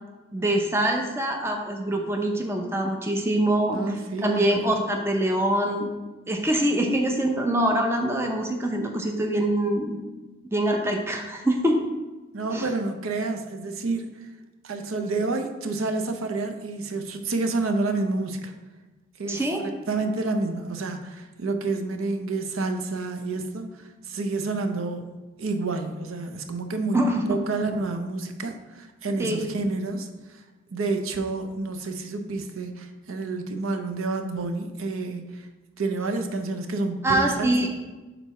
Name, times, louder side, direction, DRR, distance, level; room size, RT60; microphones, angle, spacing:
voice 1, 0.3-3.8 4.2-5.9 6.3-10.0 10.5-11.9 12.5-12.7 19.3-19.6 26.9-27.2 29.2-29.4 37.0-37.7, right 1 dB, 10° right, 2 dB, 0.5 m, -24 dB
voice 2, 3.7-4.7 12.3-14.3 14.6-18.5 19.2-25.0 25.4-27.0 27.3-30.4 30.7-35.5 35.8-37.7, right 3 dB, 90° right, 6 dB, 0.6 m, -29 dB
4.6 x 3.9 x 5.6 m, 1.2 s
head